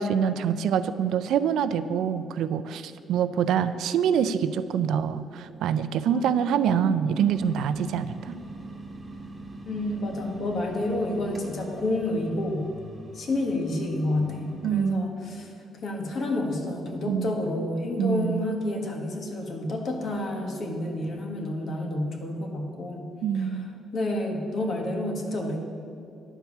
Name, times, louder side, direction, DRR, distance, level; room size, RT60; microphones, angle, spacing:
voice 1, 0.0-8.4 14.6-15.1 17.1-17.4 18.0-18.5 23.2-23.7, right 8 dB, 80° right, 12 dB, 0.4 m, -25 dB
voice 2, 6.1-6.5 9.7-12.7 13.1-15.5 15.8-23.1 23.3-23.6 23.9-25.6, left 1 dB, 55° left, 2 dB, 1.4 m, -29 dB
sound 1, 7.3-14.9, right 1 dB, 20° right, 1.4 m, -43 dB
10.0 x 4.6 x 7.1 m, 2.5 s
cardioid pair, 105°, 0 cm